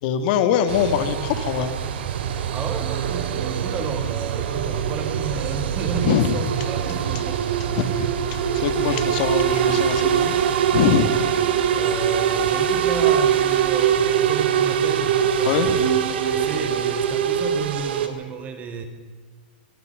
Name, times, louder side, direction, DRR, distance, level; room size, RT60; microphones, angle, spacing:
voice 1, 0.0-1.8 6.0-6.4 7.7-10.3 10.7-11.3 15.4-15.8, left 9 dB, 55° left, 9 dB, 2.6 m, -23 dB
sound 1, 0.7-18.1, right 8 dB, 75° right, 3.0 m, -23 dB
voice 2, 2.5-7.4 11.7-15.8 16.1-18.8, right 5 dB, 25° right, 7 dB, 4.0 m, -32 dB
24.0 x 24.0 x 5.4 m, 1.5 s
supercardioid pair, 140°, 6 cm